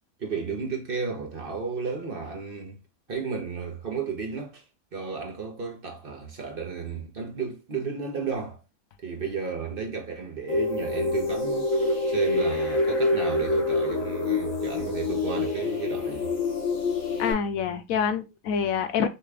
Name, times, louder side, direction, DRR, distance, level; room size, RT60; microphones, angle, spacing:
voice 1, 0.2-2.8 3.1-4.6 4.9-8.6 9.0-16.3, right 5 dB, 45° right, 1.0 m, -33 dB
sound 1, 10.5-17.3, left 3 dB, 65° left, 2.5 m, -26 dB
voice 2, 17.2-19.1, left 7 dB, 80° left, 1.1 m, -26 dB
5.7 x 2.4 x 3.3 m
omnidirectional pair, 1.4 m